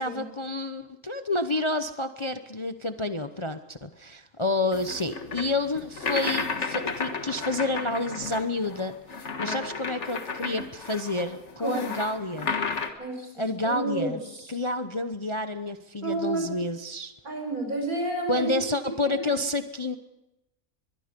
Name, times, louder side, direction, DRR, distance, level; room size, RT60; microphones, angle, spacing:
voice 1, 0.0-9.0 9.4-12.5 13.3-14.2 14.5-17.1 18.3-20.0, left 2 dB, 25° left, 9 dB, 0.7 m, -29 dB
sound 1, 4.7-12.9, left 4 dB, 50° left, 1.9 m, -33 dB
voice 2, 11.6-11.9 13.0-14.2 16.0-16.4 17.2-18.5 19.0-19.2, right 2 dB, 80° right, 3 dB, 6.0 m, -31 dB
23.0 x 22.0 x 5.3 m, 0.92 s
omnidirectional pair, 1.5 m